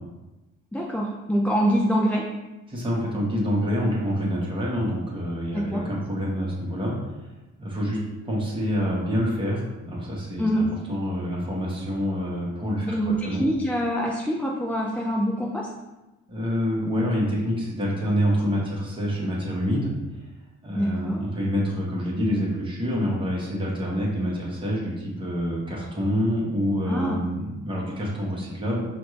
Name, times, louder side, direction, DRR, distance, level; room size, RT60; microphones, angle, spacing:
voice 1, 0.7-2.3 5.5-5.8 10.4-10.7 12.8-15.7 20.8-21.2 26.9-27.2, equal, 5° left, -2 dB, 0.4 m, -25 dB
voice 2, 2.7-7.3 7.6-8.0 8.2-13.4 16.3-19.9 20.6-28.8, equal, 15° right, -5 dB, 1.4 m, -27 dB
5.0 x 2.5 x 3.2 m, 1.1 s
cardioid pair, 90°, 30 cm